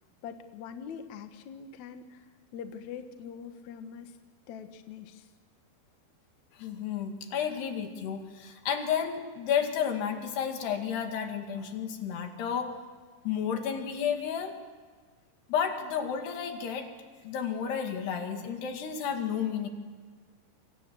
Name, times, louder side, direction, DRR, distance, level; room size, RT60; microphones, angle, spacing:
voice 1, 0.2-2.2 2.5-4.2 4.5-5.3, left 7 dB, 55° left, 7 dB, 2.3 m, -43 dB
voice 2, 6.5-12.7 13.2-14.6 15.5-16.9 17.2-19.7, left 8 dB, 80° left, 5 dB, 4.3 m, -31 dB
28.0 x 25.5 x 7.8 m, 1.5 s
omnidirectional pair, 4.7 m